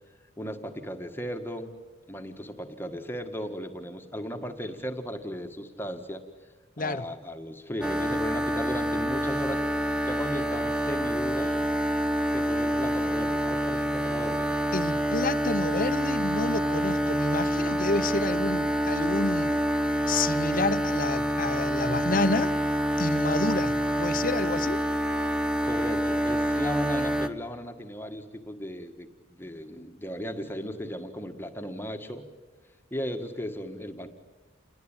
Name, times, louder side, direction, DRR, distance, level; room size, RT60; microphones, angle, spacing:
voice 1, 0.4-1.7 2.1-6.2 6.8-9.6 10.0-11.6 12.3-14.5 25.6-32.3 32.9-34.1, equal, 10° left, 5 dB, 1.6 m, -36 dB
sound 1, 7.8-27.3, equal, 5° right, 1.0 m, -27 dB
voice 2, 14.7-19.6 20.1-22.5 23.0-24.8, left 3 dB, 45° left, 12 dB, 1.0 m, -29 dB
29.0 x 21.5 x 9.0 m, 1.3 s
head